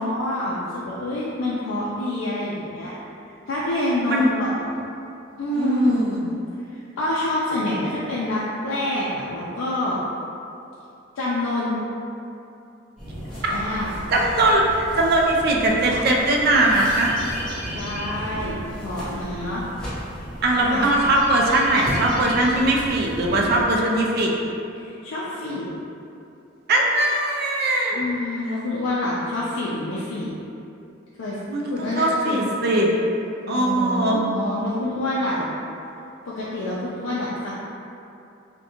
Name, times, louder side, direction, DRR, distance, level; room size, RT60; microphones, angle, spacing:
voice 1, 0.0-2.9 3.5-4.8 5.4-6.0 6.3-10.0 11.2-11.8 13.5-14.0 17.6-19.6 20.6-20.9 24.8-25.7 27.9-30.3 31.2-31.4 31.7-32.5 33.5-35.5 36.3-37.5, left 1 dB, 80° left, -7 dB, 0.4 m, -27 dB
voice 2, 5.5-6.3 13.4-13.5 14.1-17.1 20.4-24.4 26.7-28.0 31.5-32.9 33.5-34.2, right 1 dB, 55° right, -1 dB, 0.3 m, -20 dB
sound 1, 13.0-23.6, equal, 5° left, 0.9 m, -34 dB
2.5 x 2.1 x 2.7 m, 2.7 s
head